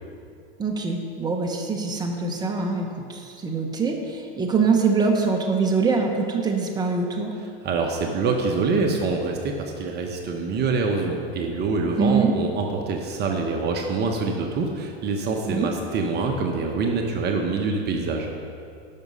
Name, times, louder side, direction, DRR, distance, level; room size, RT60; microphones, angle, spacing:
voice 1, 0.6-7.3 12.0-12.3 15.5-15.7, right 4 dB, 15° right, 1 dB, 1.1 m, -24 dB
voice 2, 7.6-18.3, right 4 dB, 35° right, 2 dB, 1.0 m, -25 dB
11.0 x 6.2 x 5.4 m, 2.5 s
hypercardioid pair, 115°, 30 cm